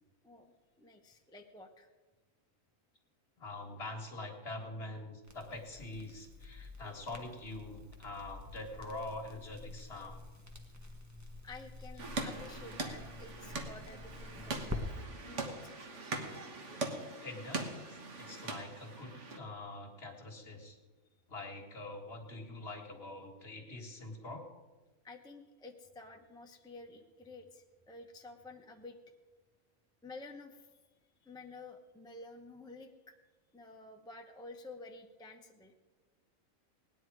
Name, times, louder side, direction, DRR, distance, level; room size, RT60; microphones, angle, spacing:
voice 1, 0.2-1.9 11.4-14.9 15.3-16.1 25.0-29.0 30.0-30.8 31.2-33.2 33.5-35.7, left 3 dB, 5° left, 2 dB, 0.7 m, -51 dB
voice 2, 3.4-10.2 17.2-20.8 21.3-24.4, left 2 dB, 45° left, 2 dB, 2.0 m, -44 dB
Crackle, 5.2-14.8, left 2 dB, 15° right, 1.1 m, -48 dB
sound 1, 12.0-19.4, right 3 dB, 60° right, 1.6 m, -41 dB
18.5 x 10.0 x 4.7 m, 1.3 s
omnidirectional pair, 1.4 m